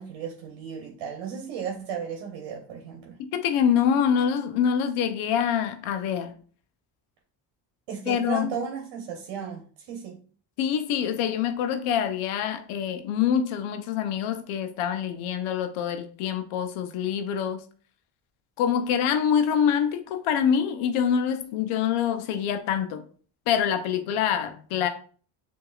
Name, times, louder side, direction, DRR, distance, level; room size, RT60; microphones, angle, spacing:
voice 1, 0.0-3.2 7.9-10.2, right 7 dB, 70° right, 1.1 m, -35 dB
voice 2, 3.2-6.3 8.1-8.5 10.6-17.6 18.6-23.0 23.5-24.9, left 8 dB, 75° left, 0.8 m, -25 dB
6.7 x 2.8 x 2.4 m
supercardioid pair, 80°, 50 cm